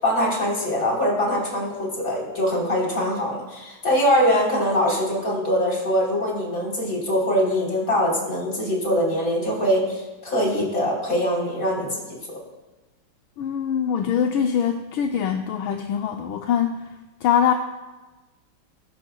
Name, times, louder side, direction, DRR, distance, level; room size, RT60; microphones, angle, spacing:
voice 1, 0.0-12.2, equal, 40° left, -3 dB, 4.1 m, -23 dB
voice 2, 13.4-16.8 17.2-17.5, left 8 dB, 80° left, 4 dB, 1.4 m, -23 dB
21.0 x 11.0 x 2.3 m, 1.1 s
omnidirectional pair, 2.3 m